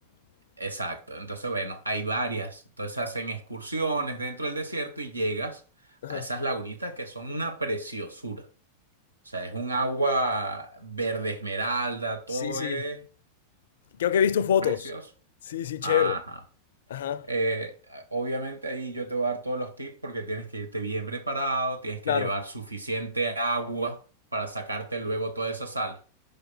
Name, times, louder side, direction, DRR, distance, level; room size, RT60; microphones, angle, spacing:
voice 1, 0.6-5.6 6.1-8.5 9.2-13.0 14.6-15.0 15.8-16.2 17.3-24.0 24.3-26.0, right 2 dB, 80° right, 1.0 m, -30 dB
voice 2, 12.3-12.8 14.0-14.9 15.5-16.2 16.9-17.3 22.1-22.4, left 9 dB, 60° left, 0.4 m, -26 dB
5.2 x 5.0 x 4.4 m
figure-of-eight pair, 90°, 0 cm